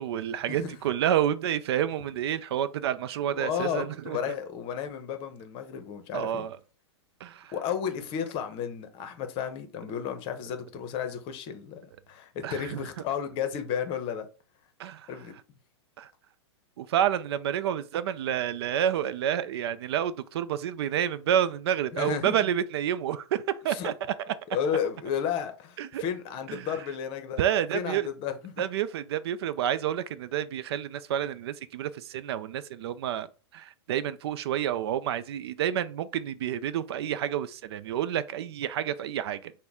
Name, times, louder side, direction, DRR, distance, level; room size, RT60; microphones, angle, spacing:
voice 1, 0.0-4.2 6.1-6.6 7.2-7.5 12.4-12.8 14.8-15.1 16.0-16.1 16.8-23.9 24.3-24.4 25.8-26.0 26.5-26.7 27.4-28.1 28.6-33.3 33.5-39.5, right 10 dB, 65° right, 0.4 m, -29 dB
voice 2, 3.4-6.5 7.5-14.3 15.1-15.3 21.9-22.3 23.7-23.9 24.5-27.4 27.7-28.5, left 8 dB, 35° left, 0.8 m, -33 dB
5.8 x 2.2 x 3.6 m
hypercardioid pair, 115°, 15 cm